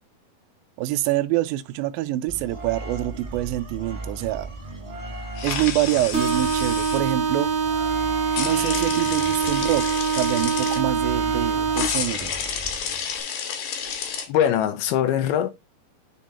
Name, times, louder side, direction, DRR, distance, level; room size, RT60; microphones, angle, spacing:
voice 1, 0.8-4.5 5.4-7.5 8.4-9.9 10.1-12.3, right 15 dB, 80° right, 2.2 m, -26 dB
sound 1, 2.3-13.2, right 2 dB, 20° right, 1.5 m, -37 dB
sound 2, 5.4-7.0 8.3-10.8 11.7-14.3, left 7 dB, 65° left, 2.7 m, -30 dB
sound 3, 6.1-12.1, right 6 dB, 65° right, 1.4 m, -24 dB
voice 2, 14.3-15.5, left 10 dB, 80° left, 2.8 m, -22 dB
9.1 x 4.3 x 3.0 m
omnidirectional pair, 4.5 m